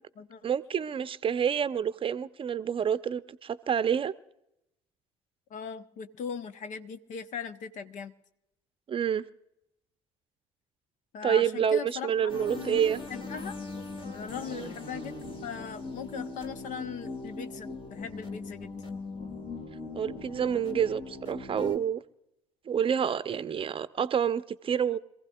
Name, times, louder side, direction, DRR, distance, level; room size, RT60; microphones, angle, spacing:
voice 1, 0.4-4.1 8.9-9.2 11.2-13.0 14.5-14.7 19.9-22.0 22.7-25.0, right 8 dB, 35° right, 0.7 m, -28 dB
voice 2, 5.5-8.1 11.1-12.8 13.1-13.6 14.1-18.7, left 6 dB, 55° left, 1.0 m, -39 dB
sound 1, 12.3-21.8, left 3 dB, 35° left, 2.5 m, -40 dB
26.0 x 15.5 x 2.5 m
figure-of-eight pair, 55°, 15 cm